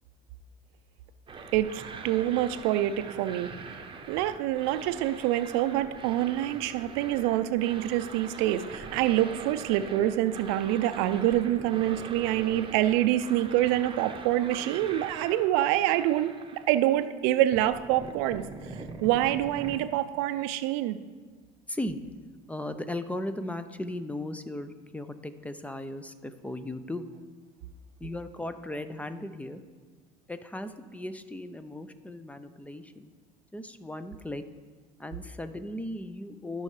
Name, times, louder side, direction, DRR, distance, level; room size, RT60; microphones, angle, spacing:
sound 1, 1.3-17.0 17.3-19.8, right 4 dB, 25° right, 1.0 m, -43 dB
voice 1, 1.5-3.5 4.1-16.3 16.7-18.4 19.0-21.0, right 13 dB, 75° right, 12 dB, 0.5 m, -26 dB
voice 2, 21.7-22.0 22.5-27.1 28.0-29.6 30.3-33.1 33.5-34.4 35.0-36.6, left 1 dB, 5° left, 10 dB, 0.6 m, -37 dB
13.5 x 5.5 x 3.3 m, 1.5 s
supercardioid pair, 85°, 20 cm